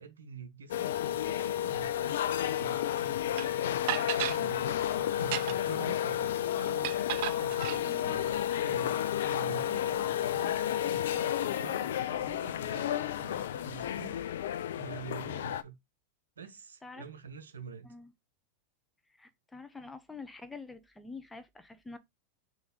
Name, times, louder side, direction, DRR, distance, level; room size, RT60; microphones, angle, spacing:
voice 1, 0.0-3.8 4.1-14.2 14.5-15.8 16.4-17.9, right 7 dB, 85° right, 0.8 m, -47 dB
sound 1, 0.7-15.6, left 11 dB, 70° left, 0.3 m, -31 dB
sound 2, 3.4-3.5 3.9-4.4 5.2-5.8 6.8-7.8, right 14 dB, 60° right, 0.3 m, -34 dB
voice 2, 19.2-22.0, left 3 dB, 10° left, 0.7 m, -46 dB
3.9 x 3.0 x 3.6 m
hypercardioid pair, 95°, 0 cm